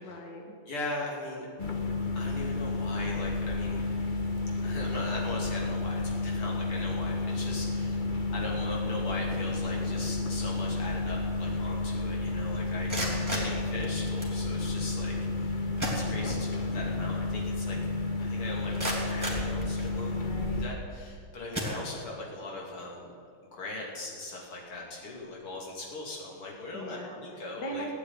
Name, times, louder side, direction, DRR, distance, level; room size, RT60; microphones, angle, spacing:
voice 1, 0.0-0.5 13.0-13.5 20.1-20.7 26.7-27.9, equal, 55° left, 1 dB, 2.3 m, -41 dB
voice 2, 0.7-1.5 2.2-3.8 4.6-8.1 8.3-13.0 13.3-15.6 15.9-17.8 18.2-20.2 20.6-23.1 23.5-27.8, left 2 dB, 85° left, -3 dB, 3.8 m, -39 dB
sound 1, 1.6-20.7, left 2 dB, 35° left, 0.9 m, -31 dB
sound 2, 12.7-14.4 15.4-15.5 15.8-16.7 17.0-17.1 17.7-17.8 18.3-20.2 20.8-21.1 21.5-22.3, right 1 dB, 10° right, 2.9 m, -35 dB
16.0 x 8.5 x 9.7 m, 2.3 s
omnidirectional pair, 2.4 m